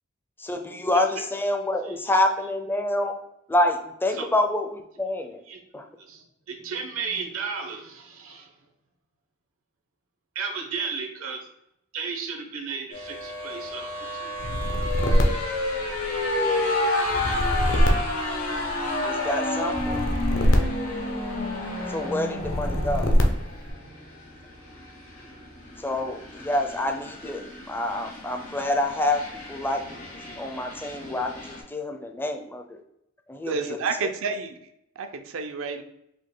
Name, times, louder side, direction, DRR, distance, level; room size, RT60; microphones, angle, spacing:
voice 1, 0.4-3.1 3.5-5.4 5.7-5.9 19.0-20.0 21.9-23.1 25.8-29.2 29.5-32.8 33.3-33.8, left 1 dB, 10° left, 4 dB, 0.4 m, -27 dB
voice 2, 6.1-8.5 10.3-11.4 11.9-13.9 14.1-14.6, right 5 dB, 85° right, 2 dB, 0.9 m, -34 dB
sound 1, 12.9-31.6, left 2 dB, 90° left, 1.6 m, -31 dB
sound 2, 14.4-16.3 17.0-19.0 19.7-21.6 22.4-23.7, equal, 65° left, 0.7 m, -24 dB
voice 3, 33.5-34.6 35.0-35.8, right 5 dB, 70° right, 6 dB, 0.5 m, -30 dB
5.1 x 2.2 x 3.7 m, 0.78 s
head